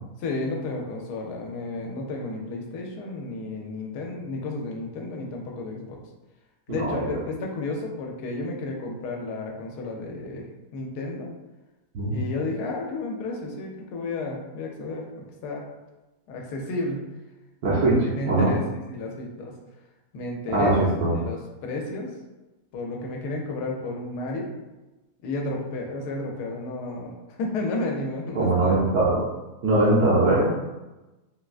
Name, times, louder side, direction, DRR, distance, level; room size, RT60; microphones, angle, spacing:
voice 1, 0.2-6.0 6.7-11.3 12.1-15.6 16.3-17.0 18.0-19.5 20.1-20.8 21.1-22.1 22.7-24.5 25.2-27.1 27.4-28.8, left 2 dB, 85° left, 0 dB, 1.2 m, -32 dB
voice 2, 6.7-7.1 11.9-12.2 17.6-18.0 18.3-18.5 20.5-21.1 28.3-29.2 29.6-30.5, right 2 dB, 75° right, -7 dB, 1.2 m, -21 dB
3.6 x 2.2 x 2.4 m, 1.1 s
omnidirectional pair, 1.7 m